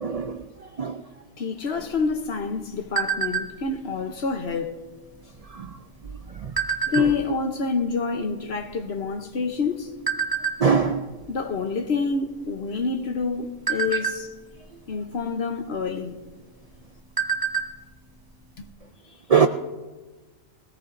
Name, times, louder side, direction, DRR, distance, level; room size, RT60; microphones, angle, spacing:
voice 1, 0.0-0.4 0.8-1.0 10.6-11.0 19.3-19.5, right 6 dB, 55° right, 0.4 m, -20 dB
voice 2, 1.4-4.8 6.9-9.9 11.3-14.3 14.9-16.2 18.6-18.7, left 4 dB, 55° left, 1.1 m, -27 dB
Cellphone alarm, 1.8-3.8 4.2-4.5 4.8-5.2 5.9-7.4 8.0-8.1 8.3-9.6 10.1-10.6 11.1-11.3 11.6-11.8 12.3-12.8 13.3-14.7 15.7-15.9 16.3-16.4 16.8-17.8 18.1-18.2 18.6-18.7, right 6 dB, 20° right, 0.8 m, -27 dB
21.5 x 17.0 x 2.6 m
omnidirectional pair, 1.4 m